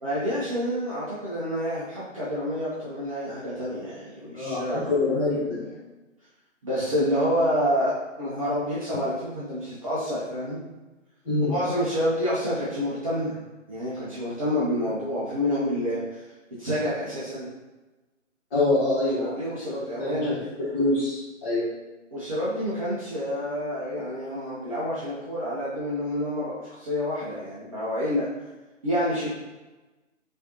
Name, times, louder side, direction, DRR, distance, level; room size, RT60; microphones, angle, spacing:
voice 1, 0.0-4.9 6.6-10.6 11.5-13.4 13.7-16.0 16.6-17.5 19.1-20.4 22.1-28.2 28.8-29.3, equal, 25° right, -10 dB, 0.7 m, -28 dB
voice 2, 4.3-5.7 11.2-11.5 18.5-19.3 20.0-20.3 20.7-21.7, left 2 dB, 15° left, -12 dB, 1.4 m, -25 dB
4.9 x 2.7 x 2.9 m, 1.1 s
figure-of-eight pair, 145°, 38 cm